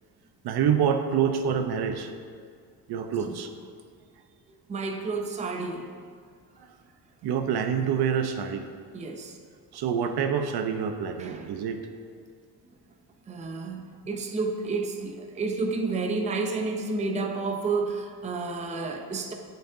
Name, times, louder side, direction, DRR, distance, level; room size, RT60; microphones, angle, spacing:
voice 1, 0.4-2.1 2.9-3.5 7.2-8.7 9.7-11.8, right 7 dB, 75° right, 7 dB, 0.8 m, -26 dB
voice 2, 4.7-5.9 8.9-9.4 11.2-11.5 13.3-19.3, right 3 dB, 20° right, 3 dB, 0.5 m, -30 dB
18.0 x 6.5 x 2.7 m, 2.1 s
cardioid pair, 175°, 39 cm